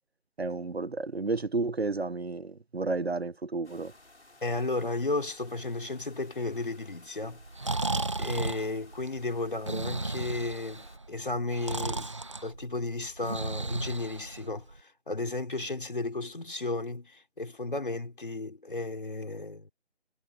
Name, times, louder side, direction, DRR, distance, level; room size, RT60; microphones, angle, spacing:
voice 1, 0.4-3.9, right 3 dB, 65° right, 1.2 m, -31 dB
sound 1, 3.6-11.0, left 2 dB, 85° left, 7.2 m, -57 dB
voice 2, 4.4-7.4 8.2-12.1 12.4-19.7, left 2 dB, 50° left, 4.3 m, -34 dB
Breathing, 7.3-14.8, right 2 dB, 25° right, 1.7 m, -34 dB
figure-of-eight pair, 175°, 33 cm